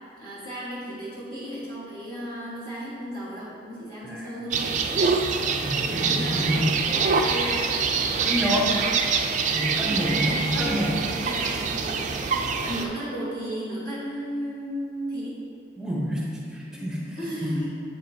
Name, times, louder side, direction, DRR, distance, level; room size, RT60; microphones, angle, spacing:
voice 1, 0.2-4.8 5.8-7.8 9.9-10.8 11.1-12.1 12.6-15.4 17.2-17.7, equal, 25° left, -11 dB, 1.4 m, -34 dB
voice 2, 4.1-4.4 5.6-6.7 8.2-8.7 9.5-11.1 15.8-17.6, equal, 5° right, -5 dB, 0.9 m, -28 dB
sound 1, 4.5-12.9, right 5 dB, 40° right, 0.3 m, -25 dB
7.8 x 4.9 x 2.7 m, 2.3 s
head